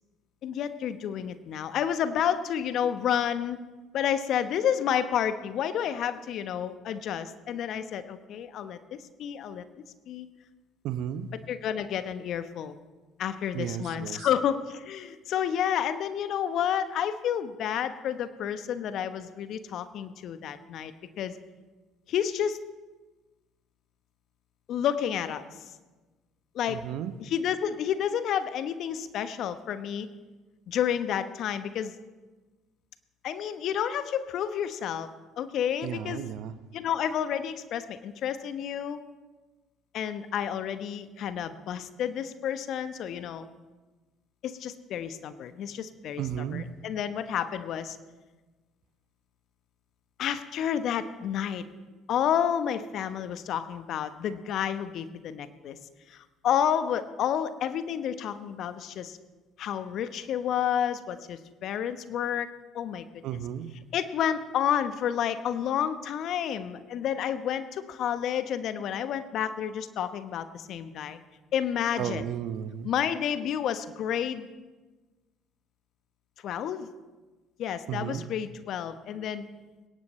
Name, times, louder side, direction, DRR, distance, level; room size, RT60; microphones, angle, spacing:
voice 1, 0.4-3.6 3.9-9.6 10.1-10.3 11.5-12.8 13.2-20.9 21.2-21.4 22.1-22.6 24.7-25.4 26.5-26.8 27.2-30.1 30.7-32.0 33.2-35.1 35.4-36.2 36.7-39.0 39.9-43.5 44.4-46.2 46.5-48.0 50.2-51.6 52.1-55.8 56.1-59.2 59.6-62.5 62.7-63.0 63.9-71.2 71.5-72.2 72.8-74.5 76.4-76.9 77.6-79.5, left 9 dB, 55° left, 1.0 m, -30 dB
voice 2, 10.8-11.3 13.5-14.3 26.7-27.1 35.8-36.6 46.2-46.7 63.2-63.7 72.0-72.9 77.9-78.3, right 10 dB, 60° right, 0.8 m, -34 dB
21.0 x 18.0 x 3.2 m
hypercardioid pair, 60°, 0 cm